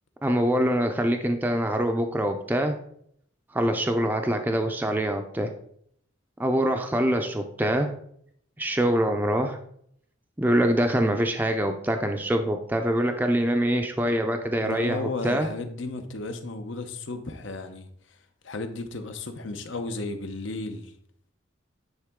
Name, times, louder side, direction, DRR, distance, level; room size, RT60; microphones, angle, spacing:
voice 1, 0.2-2.8 3.5-5.5 6.4-7.9 8.6-9.6 10.4-15.5, right 1 dB, 10° right, 4 dB, 0.4 m, -24 dB
voice 2, 14.6-17.9 18.4-20.9, left 2 dB, 70° left, 7 dB, 0.8 m, -34 dB
9.5 x 4.0 x 3.6 m, 0.67 s
head